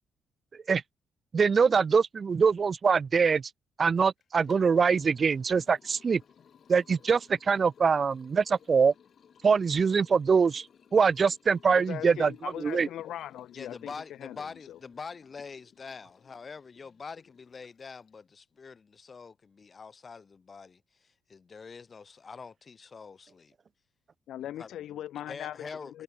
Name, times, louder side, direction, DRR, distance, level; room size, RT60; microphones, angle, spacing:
voice 1, 1.3-3.5 3.8-6.2 6.7-8.9 9.4-10.7 10.9-12.3 12.6-12.9, right 5 dB, 40° right, 0.5 m, -23 dB
Liquid, 4.2-18.3, left 7 dB, 55° left, 4.2 m, -59 dB
voice 2, 11.6-14.8 24.3-26.0, left 12 dB, 75° left, 4.3 m, -40 dB
voice 3, 13.6-23.5 24.6-24.7 25.3-26.0, left 5 dB, 35° left, 1.9 m, -45 dB
cardioid pair, 90°, 0 cm